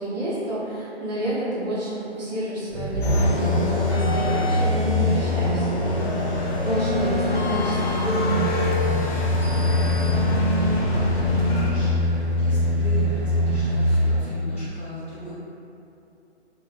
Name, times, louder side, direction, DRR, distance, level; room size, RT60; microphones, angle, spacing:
voice 1, 0.0-8.6, right 1 dB, 40° right, -10 dB, 0.8 m, -29 dB
sound 1, 2.7-14.3 14.7-14.8, left 1 dB, 70° right, 0.6 m, -24 dB
sound 2, 3.0-11.7, left 1 dB, 60° left, 0.6 m, -27 dB
sound 3, 6.3-11.9, equal, 10° right, 0.7 m, -39 dB
voice 2, 10.0-15.3, equal, 10° left, -17 dB, 0.4 m, -37 dB
2.4 x 2.0 x 3.2 m, 2.7 s
hypercardioid pair, 150°, 34 cm